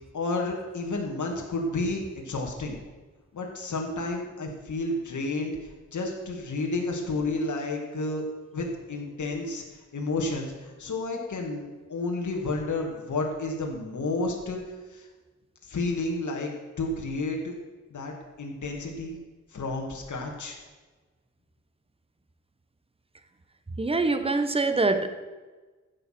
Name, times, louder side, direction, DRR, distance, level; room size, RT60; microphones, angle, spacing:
voice 1, 0.1-2.8 3.3-5.6 5.9-8.2 8.5-9.6 9.9-11.6 11.9-14.6 14.9-15.1 15.6-16.5 16.8-17.5 17.9-19.2 19.5-20.6, left 2 dB, 75° left, 0 dB, 2.2 m, -31 dB
voice 2, 23.8-25.1, right 3 dB, 20° right, 10 dB, 0.8 m, -24 dB
14.5 x 7.1 x 6.0 m, 1.3 s
wide cardioid pair, 145°, 30 cm